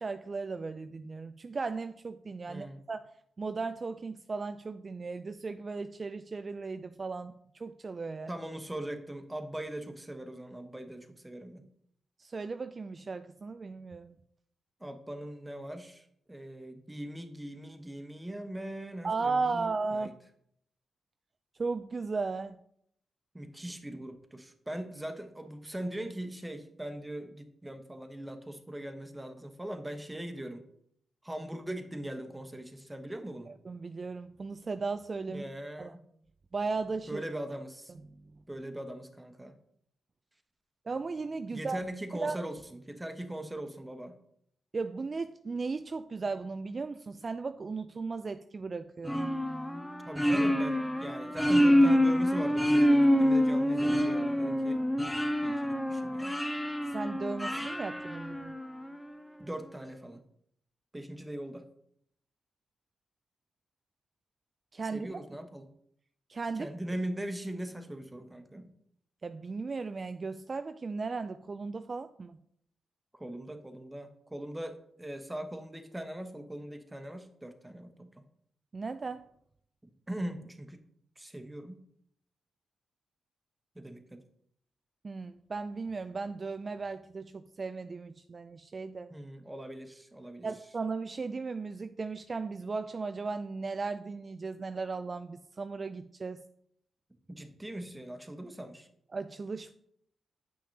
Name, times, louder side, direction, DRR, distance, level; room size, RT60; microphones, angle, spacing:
voice 1, 0.0-3.1 3.4-8.3 12.2-14.2 19.0-20.1 21.6-22.6 33.5-35.4 35.8-35.9 36.5-37.2 40.9-41.8 42.1-42.4 44.7-49.2 56.9-58.5 64.7-65.3 66.3-66.7 69.2-72.4 78.7-79.3 85.0-89.1 90.4-96.4 99.1-99.7, right 4 dB, 45° right, 10 dB, 0.4 m, -36 dB
voice 2, 2.5-2.8 8.3-11.7 14.8-20.1 23.3-30.6 31.2-33.5 35.3-36.0 37.1-37.9 38.5-39.6 41.5-44.2 50.1-54.8 55.4-56.4 59.4-60.2 60.9-61.7 64.9-65.7 66.6-68.7 73.1-78.2 80.1-80.8 81.2-81.8 83.7-84.2 89.1-90.5 97.3-98.9, right 1 dB, 15° right, 7 dB, 1.2 m, -40 dB
sound 1, 49.1-58.9, equal, 5° left, 0.7 m, -27 dB
8.5 x 5.9 x 2.9 m, 0.71 s
supercardioid pair, 45°, 0 cm